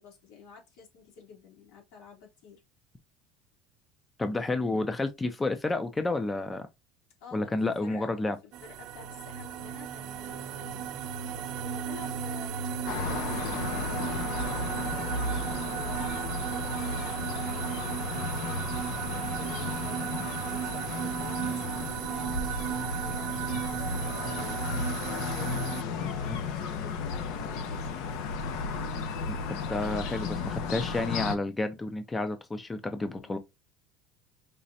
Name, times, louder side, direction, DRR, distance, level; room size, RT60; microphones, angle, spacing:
voice 1, 0.0-2.6 7.2-8.3 8.6-10.8 11.6-27.9 33.0-33.4, left 5 dB, 80° left, 3.1 m, -50 dB
voice 2, 4.2-6.7 7.3-8.4 29.3-33.4, left 2 dB, 10° left, 0.5 m, -30 dB
sound 1, 8.5-25.8, right 9 dB, 55° right, 0.6 m, -35 dB
sound 2, 12.9-31.4, left 4 dB, 65° left, 0.8 m, -34 dB
5.2 x 3.2 x 2.7 m
cardioid pair, 165°, 0 cm